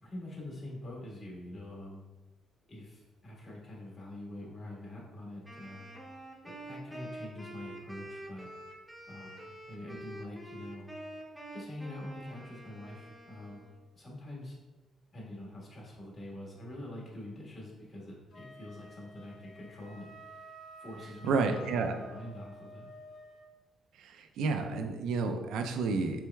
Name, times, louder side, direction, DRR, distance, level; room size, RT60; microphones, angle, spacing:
voice 1, 0.0-2.0 2.7-5.9 6.4-8.5 9.1-10.9 11.5-13.7 13.9-14.6 15.1-20.1 20.8-22.9, left 1 dB, 45° left, -4 dB, 1.4 m, -45 dB
Wind instrument woodwind instrument, 5.4-13.8, right 1 dB, ahead, 0.6 m, -47 dB
Wind instrument woodwind instrument 2, 18.3-23.5, equal, 75° left, 0.8 m, -51 dB
voice 2, 21.2-22.0 24.0-26.2, right 4 dB, 85° right, 6 dB, 0.4 m, -31 dB
4.6 x 3.3 x 2.2 m, 1.1 s
cardioid pair, 90°, 0 cm